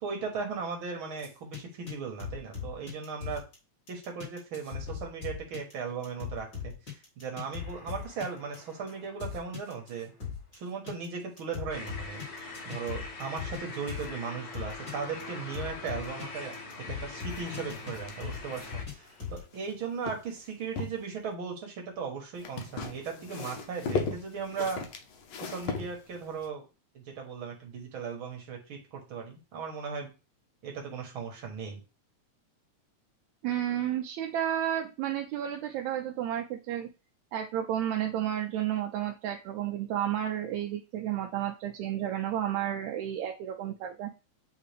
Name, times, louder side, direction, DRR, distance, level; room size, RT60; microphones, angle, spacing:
voice 1, 0.0-3.4 3.9-6.7 7.2-10.1 10.5-12.2 12.7-16.6 16.9-24.9 25.4-26.6 27.0-30.1 30.6-31.8, right 5 dB, 55° right, 1 dB, 1.7 m, -37 dB
sound 1, 1.2-1.6 1.9-2.0 2.2-3.5 3.9-10.6 10.9-11.1 11.4-13.6 13.9-14.1 14.5-14.9 15.2-15.3 15.5-16.2 16.5-17.9 18.2-19.4, left 7 dB, 35° left, 3.3 m, -39 dB
sound 2, 11.7-18.8, left 3 dB, 65° left, 0.9 m, -42 dB
sound 3, 17.3-19.7 20.0-21.0 22.4-26.5, left 5 dB, 85° left, 1.1 m, -37 dB
voice 2, 33.4-36.9 37.3-44.1, right 11 dB, 80° right, 2 dB, 1.9 m, -32 dB
9.0 x 3.3 x 3.4 m, 0.31 s
omnidirectional pair, 3.4 m